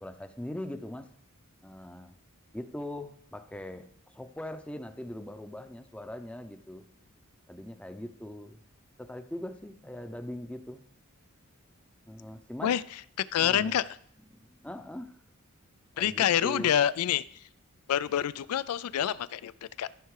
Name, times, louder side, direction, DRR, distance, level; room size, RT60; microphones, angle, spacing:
voice 1, 0.0-1.1 1.6-2.2 2.5-3.9 4.1-6.8 7.5-8.6 9.0-10.8 12.1-12.7 13.4-13.8 14.3-15.1 16.0-16.7, left 1 dB, 5° left, 9 dB, 0.5 m, -41 dB
voice 2, 13.3-13.9 16.0-17.2 17.9-19.9, left 10 dB, 85° left, 18 dB, 0.4 m, -27 dB
14.0 x 5.6 x 4.8 m, 0.63 s
head